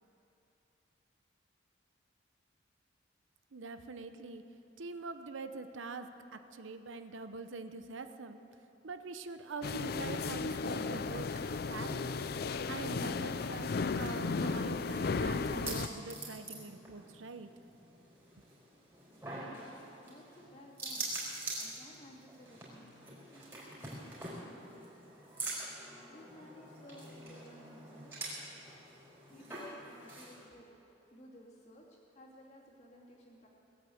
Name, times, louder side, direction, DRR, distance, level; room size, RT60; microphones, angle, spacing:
voice 1, 3.5-4.4 4.8-8.4 8.8-11.3 11.7-12.1 12.7-13.7 14.0-17.5, right 3 dB, 85° right, 9 dB, 0.8 m, -44 dB
sound 1, 9.6-15.9, left 4 dB, 50° left, 0.4 m, -35 dB
sound 2, 13.5-30.5, right 2 dB, 15° right, 4.5 m, -45 dB
voice 2, 19.3-19.6 20.0-21.1 21.6-24.9 26.1-28.2 29.3-30.7 31.1-33.5, equal, 35° left, -3 dB, 2.6 m, -56 dB
20.0 x 8.6 x 7.8 m, 3.0 s
head